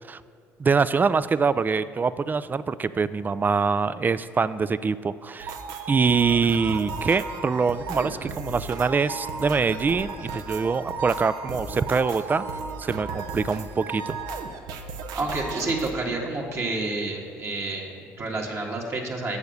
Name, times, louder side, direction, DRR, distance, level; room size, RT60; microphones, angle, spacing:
voice 1, 0.6-5.5 5.9-12.5 12.8-14.2, right 5 dB, 30° right, 15 dB, 0.3 m, -24 dB
sound 1, 5.4-15.9, right 4 dB, 70° right, 0.8 m, -35 dB
voice 2, 15.1-19.4, right 2 dB, 45° right, -1 dB, 1.6 m, -29 dB
7.1 x 6.7 x 6.5 m, 2.3 s
supercardioid pair, 65°, 7 cm